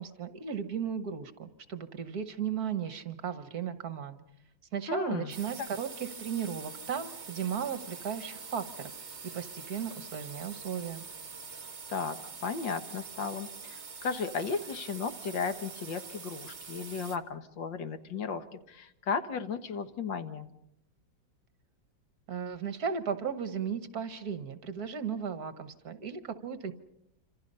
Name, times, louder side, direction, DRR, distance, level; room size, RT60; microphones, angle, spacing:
voice 1, 0.0-4.2 4.7-8.9 9.3-11.0 22.3-26.7, right 7 dB, 55° right, 11 dB, 1.8 m, -35 dB
voice 2, 4.9-5.3 5.6-5.7 11.9-20.5, left 5 dB, 80° left, 9 dB, 2.1 m, -35 dB
sound 1, 5.3-17.2, right 5 dB, 40° right, 1.8 m, -45 dB
27.5 x 26.5 x 5.5 m, 0.78 s
omnidirectional pair, 2.0 m